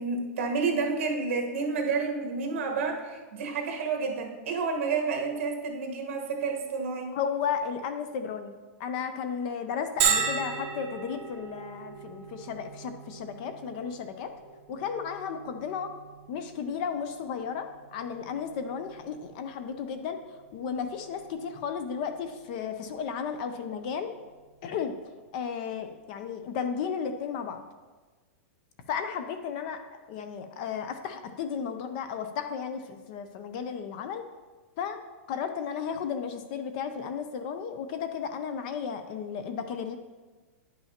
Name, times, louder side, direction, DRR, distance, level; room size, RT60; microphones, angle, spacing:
voice 1, 0.0-7.1, right 4 dB, 55° right, 2 dB, 1.3 m, -30 dB
voice 2, 7.1-14.3 14.7-15.9 16.3-24.1 24.6-24.9 25.3-27.6 28.9-34.2 34.8-40.0, left 7 dB, 35° left, 8 dB, 0.5 m, -34 dB
Bell, 10.0-25.4, right 7 dB, 35° right, 1.1 m, -37 dB
10.0 x 5.7 x 2.8 m, 1.3 s
supercardioid pair, 170°, 8 cm